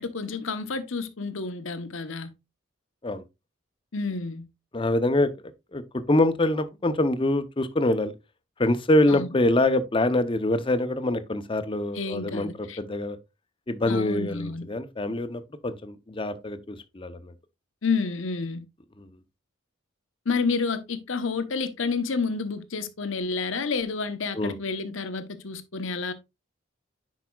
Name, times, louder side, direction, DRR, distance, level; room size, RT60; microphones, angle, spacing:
voice 1, 0.0-2.3 3.9-4.5 9.1-9.4 11.9-12.8 13.9-14.7 17.8-18.6 20.3-26.1, left 4 dB, 75° left, 0.9 m, -30 dB
voice 2, 4.7-5.3 5.7-8.1 8.6-13.2 13.7-17.3 19.0-19.1 24.3-24.6, left 1 dB, 25° left, 0.6 m, -25 dB
10.5 x 4.8 x 2.3 m
head